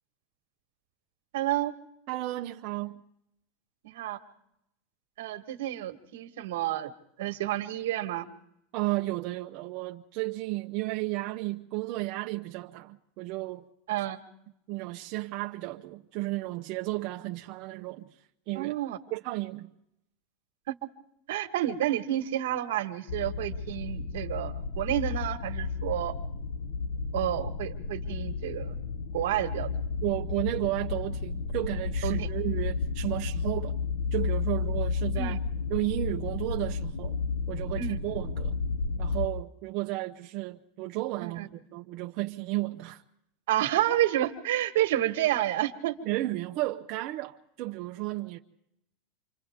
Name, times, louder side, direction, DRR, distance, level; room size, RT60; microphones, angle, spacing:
voice 1, 1.3-1.7 3.8-4.2 5.2-6.9 7.2-8.2 13.9-14.2 18.5-19.0 21.3-26.1 27.1-28.7 29.1-29.7 32.0-32.3 35.1-35.4 37.8-38.0 41.2-41.5 43.5-45.9, right 13 dB, 80° right, 1.5 m, -29 dB
voice 2, 2.1-3.0 8.7-13.6 14.7-18.1 18.5-18.7 19.1-19.7 30.0-33.8 34.1-35.4 35.7-37.2 37.5-38.6 39.0-43.0 46.0-48.4, right 19 dB, 45° right, 0.7 m, -33 dB
sound 1, 23.1-39.3, left 4 dB, 75° left, 1.1 m, -32 dB
28.5 x 25.5 x 3.6 m
supercardioid pair, 150°, 0 cm